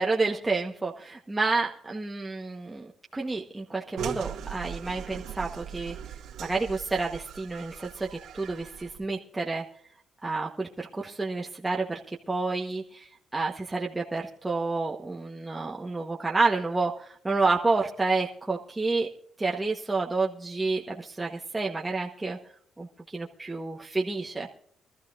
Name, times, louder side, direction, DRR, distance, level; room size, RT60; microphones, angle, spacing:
voice 1, 0.0-6.0 6.4-9.6 10.2-19.1 19.4-22.4 22.8-22.9 23.1-24.5, right 3 dB, 15° right, -1 dB, 1.2 m, -29 dB
sound 1, 4.0-9.1, right 8 dB, 80° right, 2.0 m, -39 dB
24.0 x 13.0 x 2.6 m, 0.65 s
cardioid pair, 90°, 0 cm